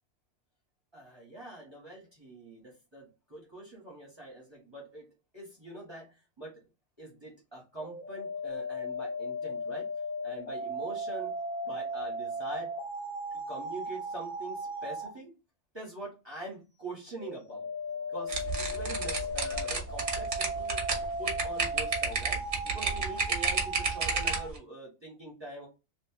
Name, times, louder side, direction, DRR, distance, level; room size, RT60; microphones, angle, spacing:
voice 1, 0.9-6.6 7.0-9.9 10.2-11.4 11.6-12.7 13.5-15.3 15.7-17.7 18.1-20.8 21.2-22.4 22.7-25.7, right 2 dB, 25° right, -4 dB, 1.2 m, -44 dB
sound 1, 7.8-15.2 17.2-24.5, equal, 40° left, 0.8 m, -36 dB
sound 2, 18.3-24.6, right 4 dB, 50° right, 1.0 m, -30 dB
3.0 x 2.9 x 2.8 m, 0.26 s
omnidirectional pair, 1.2 m